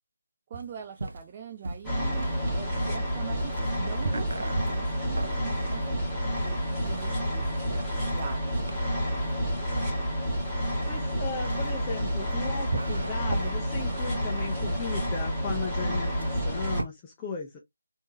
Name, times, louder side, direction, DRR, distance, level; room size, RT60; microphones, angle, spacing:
voice 1, 0.5-8.7, right 8 dB, 25° right, 0.5 m, -43 dB
sound 1, 0.5-16.9, right 2 dB, 65° right, 0.7 m, -38 dB
sound 2, 1.8-16.8, equal, ahead, 1.6 m, -29 dB
voice 2, 10.9-17.6, left 5 dB, 15° left, 0.6 m, -36 dB
3.6 x 2.6 x 3.0 m
figure-of-eight pair, 155°, 0 cm